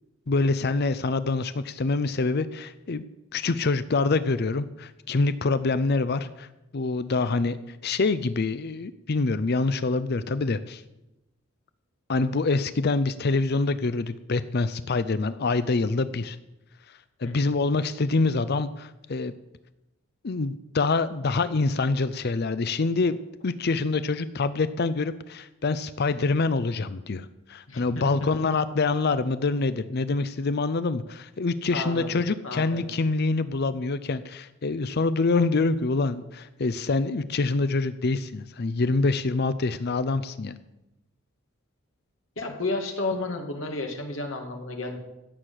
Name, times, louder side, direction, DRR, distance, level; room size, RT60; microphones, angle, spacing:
voice 1, 0.3-3.0 3.3-6.5 6.7-7.6 7.8-10.8 12.1-16.4 17.2-19.3 20.2-23.2 23.4-40.6, left 3 dB, 50° left, 14 dB, 0.5 m, -25 dB
voice 2, 27.7-28.0 31.7-32.2 32.4-32.9 42.4-45.0, left 2 dB, 65° left, 3 dB, 2.4 m, -32 dB
16.0 x 6.6 x 7.7 m, 0.95 s
head